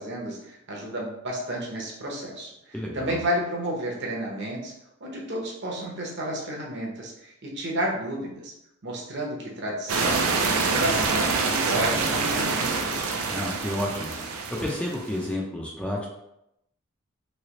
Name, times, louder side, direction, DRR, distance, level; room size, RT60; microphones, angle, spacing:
voice 1, 0.0-4.7 5.0-8.5 8.8-11.3 11.6-13.1, equal, 55° right, -2 dB, 0.8 m, -31 dB
voice 2, 2.7-3.2 13.3-14.1 14.6-16.1, left 1 dB, 5° left, -3 dB, 0.4 m, -30 dB
sound 1, 9.9-15.2, right 4 dB, 90° right, 0.5 m, -26 dB
3.2 x 2.9 x 2.9 m, 0.83 s
head